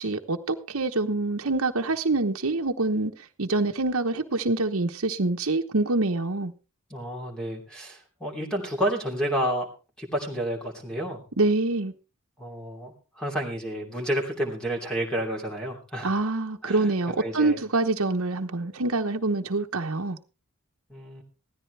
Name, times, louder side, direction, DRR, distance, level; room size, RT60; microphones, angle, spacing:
voice 1, 0.0-3.1 3.4-6.5 11.4-11.9 16.0-20.2, right 2 dB, 70° right, 1.1 m, -25 dB
voice 2, 6.9-9.7 10.0-11.2 12.4-16.3 16.6-16.9 17.2-17.6 20.9-21.2, equal, 5° left, 3.0 m, -30 dB
16.5 x 14.0 x 3.4 m
head